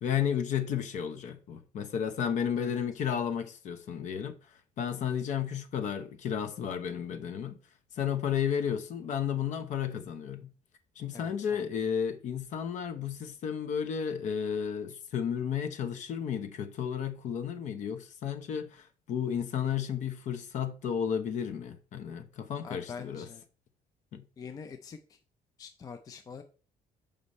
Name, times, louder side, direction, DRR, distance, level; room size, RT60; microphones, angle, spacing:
voice 1, 0.0-4.4 4.8-7.6 7.9-10.5 11.0-23.3 24.1-24.2, left 8 dB, 55° left, 0.9 m, -33 dB
voice 2, 11.1-11.6 22.6-23.4 24.4-25.2 25.6-26.4, left 6 dB, 25° left, 0.4 m, -45 dB
6.8 x 5.1 x 4.2 m
cardioid pair, 175°, 15 cm